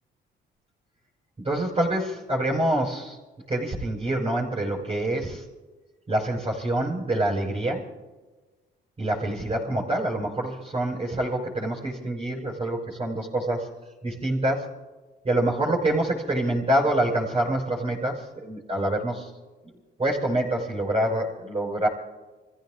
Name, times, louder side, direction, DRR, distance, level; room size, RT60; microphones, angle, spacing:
voice 1, 1.4-3.2 3.5-5.4 6.1-7.8 9.0-13.7 14.0-14.7 15.2-19.3 20.0-21.9, right 1 dB, 30° right, -4 dB, 5.4 m, -26 dB
29.0 x 15.5 x 2.6 m, 1.2 s
cardioid pair, 90°, 20 cm